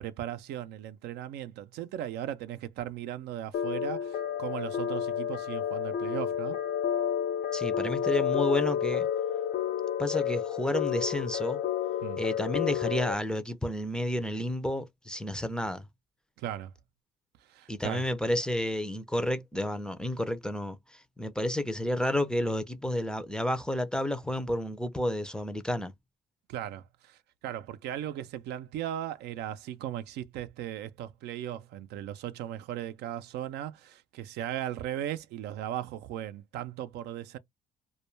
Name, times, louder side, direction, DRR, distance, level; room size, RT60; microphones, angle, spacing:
voice 1, 0.0-6.6 12.0-12.2 16.4-16.7 17.5-18.1 26.5-37.4, right 11 dB, 80° right, 0.5 m, -37 dB
sound 1, 3.5-13.1, left 9 dB, 75° left, 0.6 m, -30 dB
voice 2, 7.5-9.1 10.0-11.6 12.2-15.9 17.7-25.9, left 1 dB, 5° left, 0.4 m, -31 dB
2.2 x 2.2 x 3.1 m
cardioid pair, 110°, 17 cm